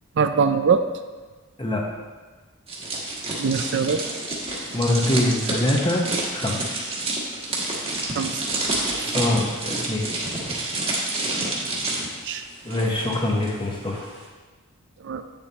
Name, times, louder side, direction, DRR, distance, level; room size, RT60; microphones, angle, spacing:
voice 1, 0.2-0.8 3.4-4.0 8.2-8.4 9.0-9.1 12.2-12.4 15.0-15.2, right 5 dB, 55° right, 8 dB, 0.4 m, -22 dB
sound 1, 2.7-13.5 13.8-14.1, right 2 dB, 30° right, 1.4 m, -29 dB
voice 2, 4.7-6.0 6.3-6.7 9.1-10.1 12.6-14.1, left 1 dB, 25° left, 0 dB, 1.0 m, -24 dB
8.7 x 7.1 x 2.9 m, 1.3 s
head